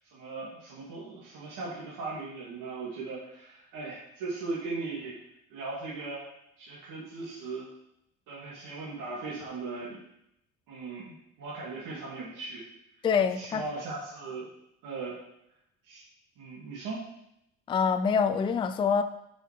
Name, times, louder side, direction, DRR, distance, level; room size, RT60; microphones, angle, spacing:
voice 1, 0.1-5.2 5.5-6.2 6.6-7.7 8.3-10.0 10.7-12.6 13.4-14.5 14.8-15.2 15.9-16.0 16.4-17.0, right 3 dB, 65° right, -7 dB, 2.4 m, -38 dB
voice 2, 13.0-13.6 17.7-19.0, left 6 dB, 15° left, 8 dB, 0.3 m, -25 dB
6.5 x 5.7 x 5.2 m, 0.82 s
cardioid pair, 125°, 34 cm